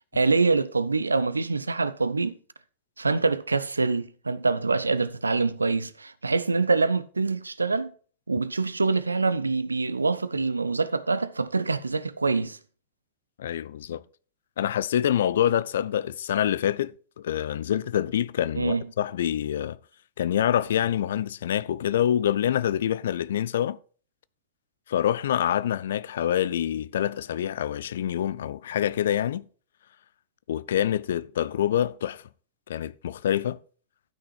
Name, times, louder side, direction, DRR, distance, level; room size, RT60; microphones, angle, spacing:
voice 1, 0.1-2.4 3.0-7.9 8.3-12.6 18.6-18.8, right 3 dB, 80° right, 0.6 m, -25 dB
voice 2, 13.4-14.0 14.6-19.8 20.2-23.8 24.9-29.4 30.5-32.2 32.7-33.6, left 10 dB, 60° left, 0.4 m, -26 dB
12.5 x 6.1 x 4.4 m
figure-of-eight pair, 90°, 0 cm